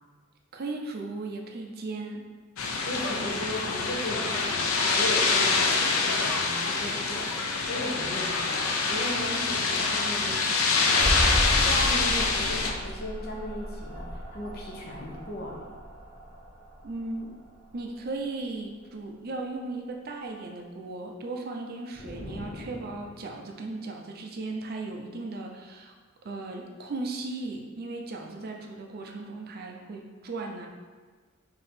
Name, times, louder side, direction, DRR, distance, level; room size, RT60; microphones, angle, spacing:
voice 1, 0.5-2.3 16.8-17.4 17.7-25.9 26.2-30.7, right 3 dB, 50° right, 2 dB, 0.5 m, -36 dB
sound 1, 2.6-12.7, left 4 dB, 90° left, 0.5 m, -26 dB
voice 2, 2.8-10.9 11.6-15.7, left 1 dB, 50° left, -2 dB, 0.8 m, -36 dB
sound 2, 11.0-18.1, equal, 10° right, 1.1 m, -33 dB
sound 3, 21.9-23.5, left 1 dB, 30° left, 0.4 m, -42 dB
3.6 x 2.8 x 4.2 m, 1.4 s
head